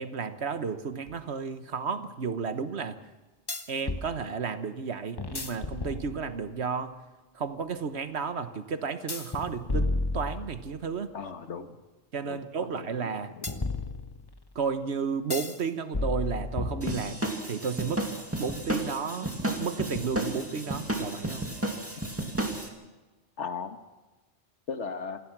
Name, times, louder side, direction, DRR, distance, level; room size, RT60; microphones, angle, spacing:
voice 1, 0.0-3.0 3.7-6.9 7.3-11.1 12.1-13.3 14.5-18.0 18.4-21.5, right 5 dB, 70° right, 11 dB, 1.4 m, -32 dB
sound 1, 1.1-1.2 3.5-4.1 5.2-6.5 9.1-10.8 13.4-14.4 15.3-15.6 15.9-17.3, left 2 dB, 20° left, 1.0 m, -32 dB
voice 2, 11.1-11.8 12.2-12.4 12.7-12.9 13.4-13.5 23.4-23.8 24.7-25.2, left 5 dB, 85° left, 9 dB, 1.8 m, -36 dB
sound 2, 16.8-22.7, right 1 dB, 10° right, 2.3 m, -32 dB
27.5 x 16.5 x 6.1 m, 1.2 s
omnidirectional pair, 1.2 m